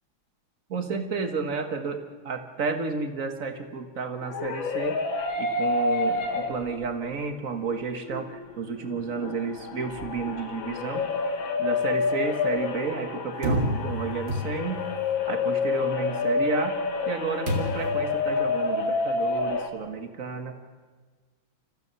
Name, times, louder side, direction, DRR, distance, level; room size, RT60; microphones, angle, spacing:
voice 1, 0.7-5.0 5.4-11.1 11.6-14.8 15.3-16.8 17.0-20.5, right 5 dB, 45° right, 6 dB, 1.8 m, -31 dB
sound 1, 4.2-6.9 7.3-7.4 8.0-19.7, left 4 dB, 75° left, 2.4 m, -28 dB
Punch a wall, 13.4-14.9 17.5-18.0, equal, 65° right, 3.1 m, -29 dB
29.5 x 14.5 x 6.9 m, 1.4 s
omnidirectional pair, 2.1 m